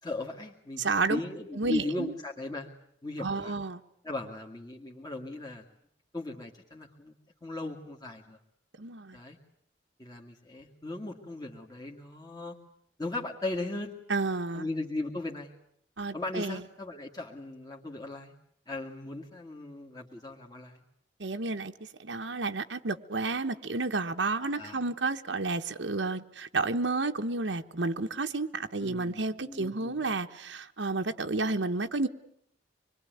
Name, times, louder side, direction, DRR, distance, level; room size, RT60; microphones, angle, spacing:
voice 1, 0.0-2.7 3.0-3.6 4.0-5.6 6.1-7.1 7.4-8.4 9.1-9.4 10.0-12.6 13.0-13.9 14.5-15.5 16.1-18.3 18.7-20.8 24.4-24.8 28.8-30.0, left 2 dB, 20° left, 2.1 m, -37 dB
voice 2, 0.8-1.2 1.5-2.1 3.2-3.8 8.8-9.2 14.1-14.7 16.0-16.6 21.2-32.1, right 3 dB, 80° right, 1.2 m, -31 dB
26.0 x 22.5 x 9.3 m
head